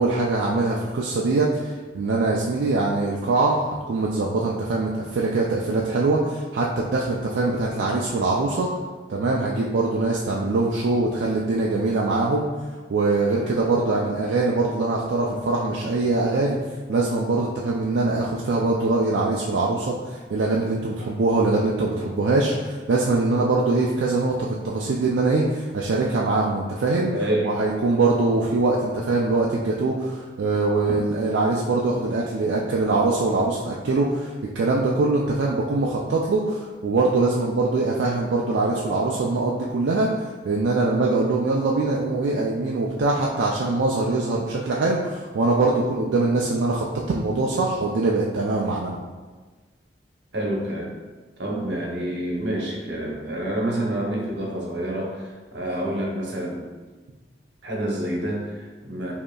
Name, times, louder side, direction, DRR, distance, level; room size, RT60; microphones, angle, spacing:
voice 1, 0.0-8.7 9.1-12.5 12.9-16.6 16.9-27.1 27.4-49.0, right 3 dB, 85° right, -3 dB, 0.4 m, -23 dB
voice 2, 27.1-27.6 50.3-50.9 51.4-56.6 57.6-59.1, right 1 dB, 65° right, -3 dB, 0.9 m, -28 dB
5.0 x 2.8 x 2.3 m, 1.3 s
head